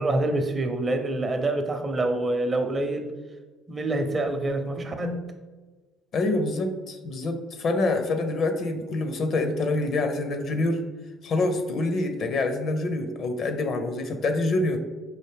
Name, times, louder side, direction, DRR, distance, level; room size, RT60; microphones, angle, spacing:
voice 1, 0.0-3.1 3.7-5.2, right 2 dB, 30° right, 6 dB, 0.6 m, -26 dB
voice 2, 6.1-10.8 11.2-14.8, left 2 dB, 50° left, 7 dB, 0.5 m, -26 dB
4.7 x 2.5 x 3.3 m, 1.3 s
hypercardioid pair, 65°, 0 cm